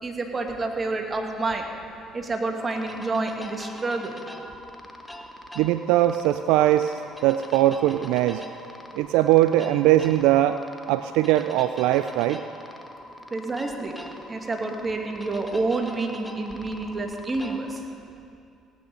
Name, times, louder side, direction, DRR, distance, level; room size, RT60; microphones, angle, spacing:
voice 1, 0.0-1.7 2.1-4.1 13.3-14.0 14.3-17.8, right 3 dB, 30° right, 3 dB, 2.0 m, -28 dB
sound 1, 2.6-17.8, left 1 dB, 10° left, 1.4 m, -43 dB
voice 2, 5.6-8.5 8.9-10.6 10.9-12.4, right 14 dB, 75° right, 11 dB, 0.3 m, -21 dB
17.5 x 9.3 x 5.4 m, 2.5 s
hypercardioid pair, 55°, 0 cm